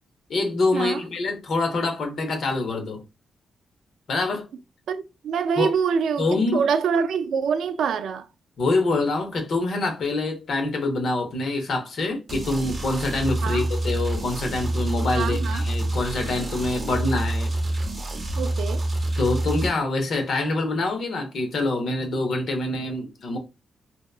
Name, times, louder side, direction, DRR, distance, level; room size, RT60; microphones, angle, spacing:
voice 1, 0.3-3.0 4.1-4.5 5.6-5.7 6.2-6.6 8.6-17.5 19.2-23.4, left 2 dB, 55° left, 0.7 m, -25 dB
voice 2, 4.9-8.3 13.4-13.6 15.1-15.7 18.4-18.8, right 6 dB, 85° right, 0.3 m, -25 dB
sound 1, 12.3-19.7, right 1 dB, 30° right, 0.7 m, -27 dB
2.8 x 2.2 x 2.3 m
wide cardioid pair, 155°, 0 cm